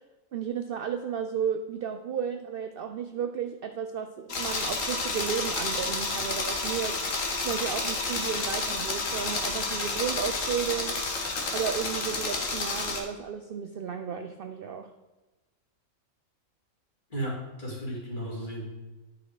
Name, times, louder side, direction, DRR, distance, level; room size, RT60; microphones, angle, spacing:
voice 1, 0.3-11.0 11.5-14.9, right 7 dB, 60° right, 7 dB, 0.6 m, -33 dB
sound 1, 4.3-13.0, left 3 dB, 75° left, 1.7 m, -30 dB
voice 2, 17.1-18.6, right 1 dB, 35° left, -4 dB, 2.8 m, -34 dB
9.8 x 5.7 x 4.8 m, 1.1 s
omnidirectional pair, 1.4 m